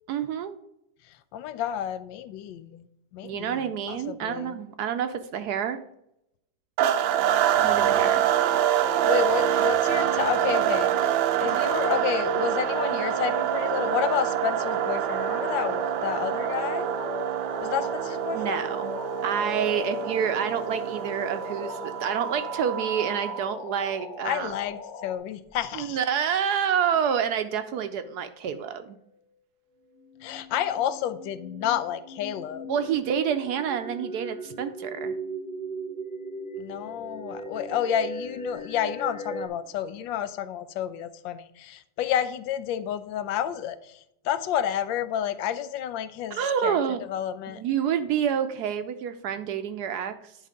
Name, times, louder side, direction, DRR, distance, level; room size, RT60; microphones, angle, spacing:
voice 1, 0.1-0.6 3.2-5.8 7.6-8.2 18.3-24.5 25.7-29.0 32.7-35.1 46.3-47.0 47.5-50.3, right 8 dB, 75° right, 9 dB, 1.0 m, -28 dB
voice 2, 1.1-2.9 3.1-4.6 7.5-8.2 9.0-16.9 17.6-18.7 24.2-26.0 30.2-32.7 36.6-46.8 47.1-47.6, left 10 dB, 85° left, 12 dB, 1.3 m, -30 dB
sound 1, 6.8-23.5, right 10 dB, 90° right, 1.4 m, -26 dB
sound 2, 12.6-25.2, left 5 dB, 55° left, 0.9 m, -40 dB
sound 3, 24.6-24.9 25.5-25.6 27.0-27.4 27.7-28.6 30.0-39.5, right 2 dB, 5° left, 0.6 m, -39 dB
10.0 x 4.0 x 5.0 m, 0.78 s
omnidirectional pair, 2.0 m